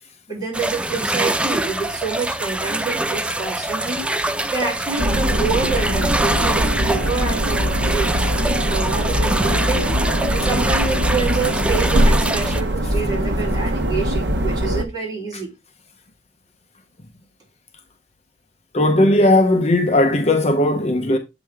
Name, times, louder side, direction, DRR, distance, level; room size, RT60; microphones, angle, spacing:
voice 1, 0.3-4.1 4.4-9.9 10.3-15.5, right 4 dB, 20° right, 3.2 m, -27 dB
sound 1, 0.5-12.6, right 1 dB, 5° right, 0.4 m, -24 dB
sound 2, 5.0-14.8, equal, 65° right, 1.0 m, -21 dB
voice 2, 18.7-21.2, left 1 dB, 35° left, 0.8 m, -16 dB
7.6 x 5.1 x 3.5 m
head